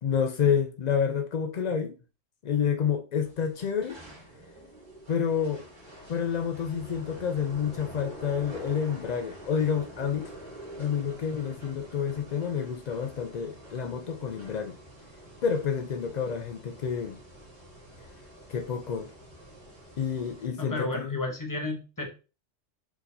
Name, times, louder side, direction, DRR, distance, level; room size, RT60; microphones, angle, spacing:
voice 1, 0.0-1.9 2.4-4.0 5.1-5.7 6.1-10.3 10.8-14.8 15.4-17.2 18.5-19.1 20.0-21.2, left 7 dB, 75° left, 0.4 m, -29 dB
sound 1, 3.1-20.5, right 1 dB, 40° right, 1.7 m, -47 dB
voice 2, 20.6-22.1, left 2 dB, 15° left, 1.0 m, -32 dB
4.6 x 3.9 x 2.7 m
omnidirectional pair, 1.3 m